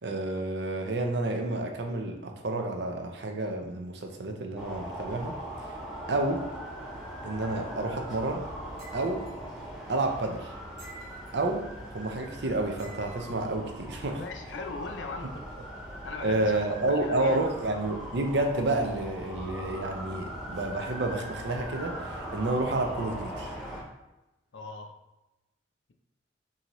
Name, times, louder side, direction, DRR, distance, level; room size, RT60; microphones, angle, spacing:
voice 1, 0.0-5.3 6.1-6.4 7.2-8.5 8.9-9.3 9.9-10.5 11.3-14.2 16.2-23.5, right 2 dB, 70° right, 3 dB, 0.6 m, -30 dB
sound 1, 4.6-23.8, equal, ahead, 1.0 m, -40 dB
sound 2, 8.8-9.4 10.8-11.4 12.8-13.4, right 3 dB, 35° right, 1.4 m, -49 dB
voice 2, 13.9-15.5 16.0-17.4 24.5-24.9, left 4 dB, 90° left, 5 dB, 0.5 m, -40 dB
6.0 x 2.8 x 3.0 m, 1.0 s
head